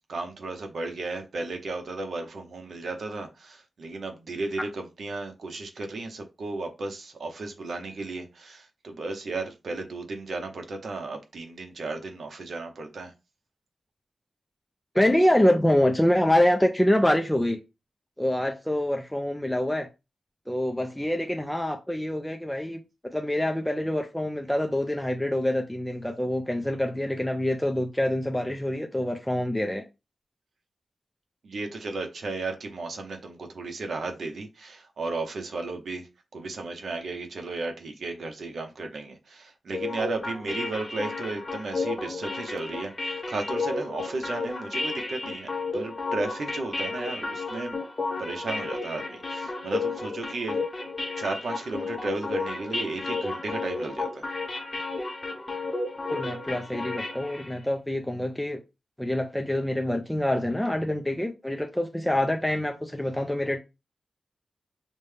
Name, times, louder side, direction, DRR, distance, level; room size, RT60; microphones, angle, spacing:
voice 1, 0.1-13.1 31.4-42.9 43.3-47.8 48.2-50.6 51.2-54.3, right 3 dB, 65° right, 0.8 m, -34 dB
voice 2, 14.9-17.6 18.2-19.9 20.5-22.8 23.1-29.8 56.1-58.6 59.0-63.6, left 1 dB, 5° left, 0.3 m, -25 dB
sound 1, 39.7-57.6, left 3 dB, 25° left, 0.7 m, -32 dB
5.2 x 2.1 x 3.3 m
wide cardioid pair, 175°, 0 cm